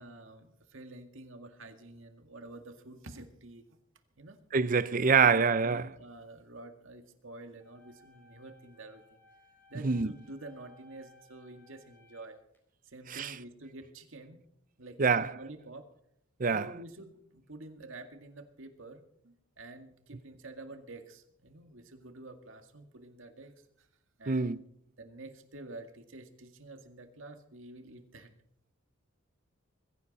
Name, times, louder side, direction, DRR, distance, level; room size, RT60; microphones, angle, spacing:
voice 1, 0.0-3.8 4.2-4.4 5.2-9.2 9.7-12.4 12.8-14.4 14.8-15.9 16.5-23.9 24.2-24.5 25.0-28.3, right 2 dB, 70° right, 2.0 m, -49 dB
voice 2, 4.5-5.9 9.8-10.1 13.1-13.3 15.0-15.3 16.4-16.7 24.3-24.6, right 5 dB, 40° right, 0.6 m, -25 dB
sound 1, 7.6-12.6, left 2 dB, 10° left, 3.9 m, -62 dB
21.5 x 15.5 x 4.2 m
head